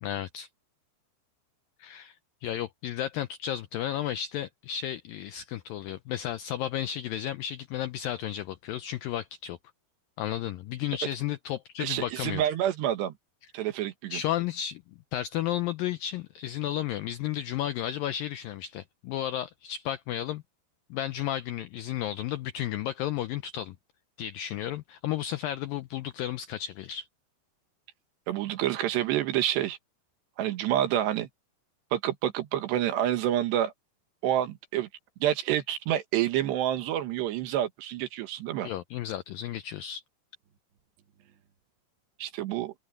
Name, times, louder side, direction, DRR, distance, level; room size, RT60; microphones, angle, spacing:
voice 1, 0.0-0.5 1.8-9.6 10.2-12.5 14.1-14.8 15.1-20.4 20.9-23.8 24.2-27.1 38.6-40.0, left 11 dB, 90° left, 2.0 m, -33 dB
voice 2, 11.8-13.1 13.5-14.2 28.3-29.8 30.4-31.3 31.9-33.7 34.2-34.9 35.2-38.7 42.2-42.7, right 12 dB, 80° right, 3.6 m, -28 dB
open air
omnidirectional pair, 4.9 m